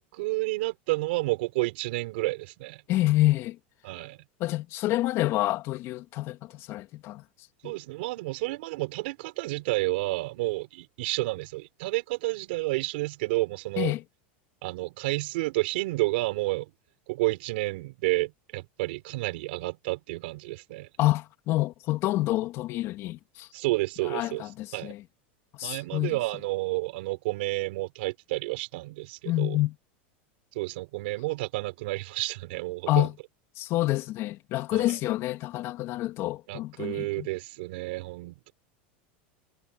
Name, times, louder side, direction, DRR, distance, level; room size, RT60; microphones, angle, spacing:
voice 1, 0.0-2.8 3.8-4.2 7.6-13.9 14.6-16.7 17.1-20.9 23.5-24.4 24.7-24.9 25.6-29.6 30.5-33.1 34.7-35.0 36.5-38.5, right 21 dB, 70° right, 4.0 m, -30 dB
voice 2, 2.9-3.6 4.4-7.2 7.6-7.7 13.8-14.0 21.0-23.5 24.1-25.0 25.6-26.2 29.2-29.7 32.9-33.1 33.6-37.3, left 17 dB, 45° left, 2.6 m, -27 dB
supercardioid pair, 130°, 6 cm